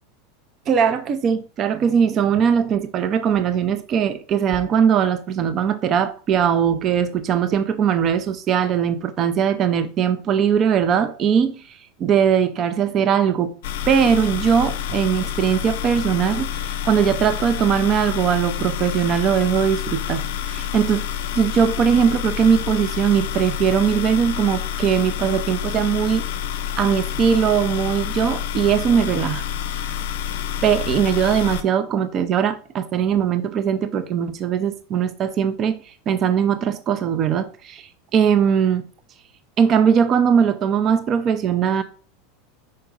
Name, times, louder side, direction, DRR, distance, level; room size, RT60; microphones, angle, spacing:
voice 1, 0.7-13.6 13.9-21.0 21.3-26.3 26.8-29.4 29.8-29.9 30.6-38.9 39.6-41.8, right 7 dB, 35° right, 0.7 m, -20 dB
sound 1, 13.6-31.6, left 9 dB, 60° left, 0.6 m, -28 dB
5.5 x 5.3 x 3.9 m
figure-of-eight pair, 85°, 0 cm